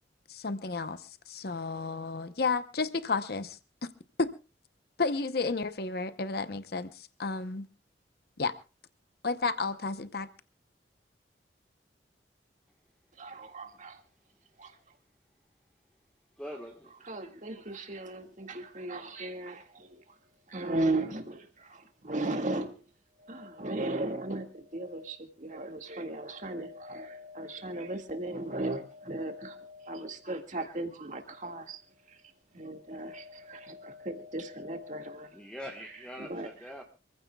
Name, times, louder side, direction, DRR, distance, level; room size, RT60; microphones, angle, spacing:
voice 1, 0.3-3.6 4.2-4.3 5.0-7.6 8.4-8.5 9.2-10.3, left 4 dB, 60° left, 0.8 m, -32 dB
voice 2, 13.2-14.0 14.6-14.7 17.0-20.0 20.5-22.8 23.2-31.8 32.1-32.2 32.5-35.4 36.3-36.5, right 2 dB, 45° right, 1.9 m, -36 dB
voice 3, 16.4-17.1 35.1-36.8, equal, 5° left, 1.3 m, -44 dB
26.5 x 15.0 x 2.3 m
head